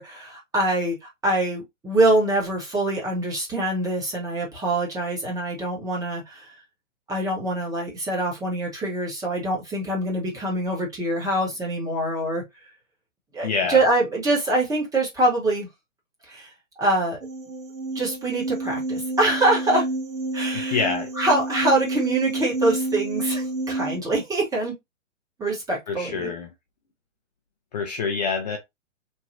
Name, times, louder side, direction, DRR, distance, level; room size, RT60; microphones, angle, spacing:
voice 1, 0.0-6.5 7.1-12.4 13.3-15.7 16.3-16.5 16.8-17.2 17.9-19.9 20.3-20.8 21.2-24.7 25.4-26.3, right 2 dB, 10° right, 0.9 m, -24 dB
voice 2, 13.4-13.8 20.7-21.1 25.9-26.5 27.7-28.6, left 5 dB, 35° left, 0.5 m, -26 dB
sound 1, 17.2-24.0, right 2 dB, 80° right, 0.8 m, -29 dB
3.2 x 2.2 x 2.6 m
figure-of-eight pair, 125°, 39 cm